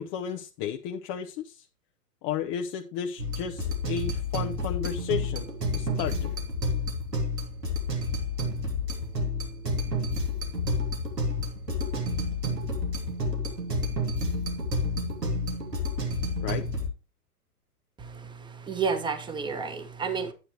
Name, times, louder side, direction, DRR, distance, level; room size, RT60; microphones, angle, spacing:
voice 1, 0.0-1.7 2.2-5.4 5.7-6.3 16.4-16.7, left 8 dB, 30° left, 0.6 m, -33 dB
sound 1, 3.2-16.9, left 1 dB, 90° right, 3.0 m, -30 dB
voice 2, 18.0-20.3, right 5 dB, 10° right, 1.1 m, -31 dB
10.0 x 9.5 x 3.2 m
hypercardioid pair, 110°, 48 cm